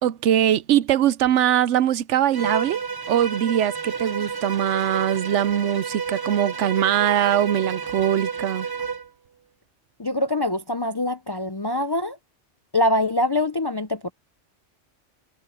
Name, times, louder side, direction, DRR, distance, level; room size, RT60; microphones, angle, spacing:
voice 1, 0.0-8.7, right 11 dB, 75° right, 0.9 m, -22 dB
Bowed string instrument, 2.3-9.1, right 6 dB, 25° right, 0.6 m, -30 dB
voice 2, 10.0-12.2 12.7-14.1, left 1 dB, 35° left, 0.4 m, -24 dB
omnidirectional pair, 1.3 m